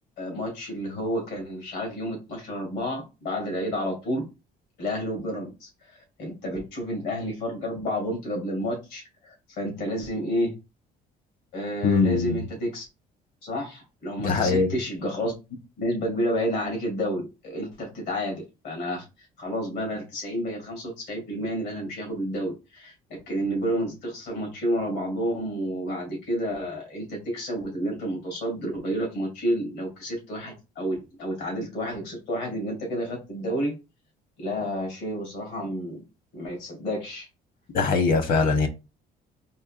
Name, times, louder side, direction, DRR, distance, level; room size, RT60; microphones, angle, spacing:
voice 1, 0.2-4.2 4.8-10.5 11.5-12.8 13.4-15.3 15.8-33.7 34.4-36.0 36.3-37.3, equal, 85° left, 2.4 m, -30 dB
voice 2, 11.8-12.4 14.2-14.7 37.7-38.7, left 4 dB, 55° left, 1.0 m, -22 dB
4.4 x 3.2 x 2.5 m
cardioid pair, 110°, 17 cm